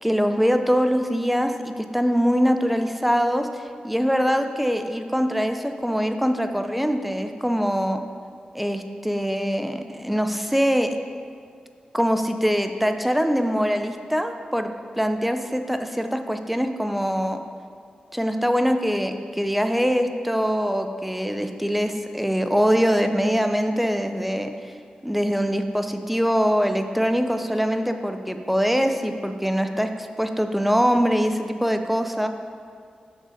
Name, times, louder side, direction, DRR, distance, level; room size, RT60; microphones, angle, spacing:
voice 1, 0.0-8.0 8.5-11.0 11.9-17.4 18.1-24.5 25.0-32.3, equal, 5° right, 7 dB, 0.5 m, -23 dB
6.3 x 3.9 x 5.0 m, 2.2 s
cardioid pair, 45°, 3 cm